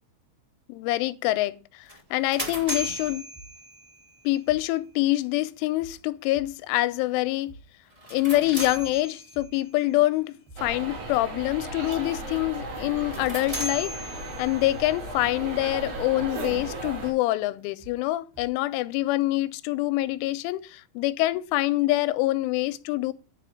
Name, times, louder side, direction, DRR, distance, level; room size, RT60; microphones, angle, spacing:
voice 1, 0.7-3.3 4.2-7.6 8.1-13.9 14.4-23.1, left 17 dB, 85° left, 3.1 m, -26 dB
sound 1, 1.9-4.1 7.9-9.6 12.9-14.7, equal, 25° right, 0.7 m, -36 dB
sound 2, 2.1-2.2 2.6-3.7 4.1-4.2 4.5-4.6 5.1-5.2 5.6-6.0 6.3-6.8 7.1-7.2 7.5-7.6 8.1-8.2 8.6-9.7 10.1-10.2 10.5-10.6 11.1-11.2 11.6-12.0 12.3-13.2 13.5-13.6 14.1-14.2 14.6-15.7 16.1-16.2 16.5-16.6 17.1-17.2 17.6-18.0 18.3-18.8 19.1-19.2, right 2 dB, 60° right, 3.5 m, -49 dB
sound 3, 10.6-17.1, right 2 dB, 85° right, 6.7 m, -35 dB
10.5 x 5.0 x 7.5 m
omnidirectional pair, 5.5 m